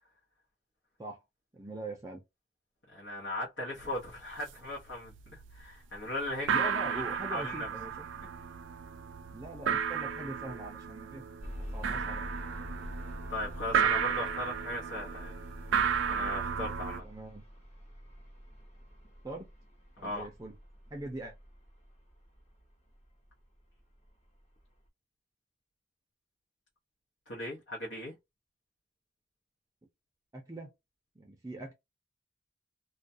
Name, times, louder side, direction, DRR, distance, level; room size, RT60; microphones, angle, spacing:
voice 1, 1.5-2.2 6.5-8.1 9.3-11.3 11.7-12.3 17.0-17.4 19.2-19.5 20.0-20.6 20.9-21.3 30.3-30.7 31.2-31.7, right 1 dB, 20° right, 0.4 m, -42 dB
voice 2, 2.9-7.0 7.3-7.7 13.3-15.3 16.1-17.0 20.0-20.3 27.3-28.1, left 1 dB, 85° left, 0.9 m, -38 dB
sound 1, 3.8-3.9 4.2-4.7 5.1-5.6 6.0-6.1 6.3-17.0, right 7 dB, 85° right, 0.4 m, -33 dB
sound 2, 11.4-23.3 24.0-24.1 24.6-24.7, equal, 35° left, 0.8 m, -46 dB
2.3 x 2.2 x 2.6 m
head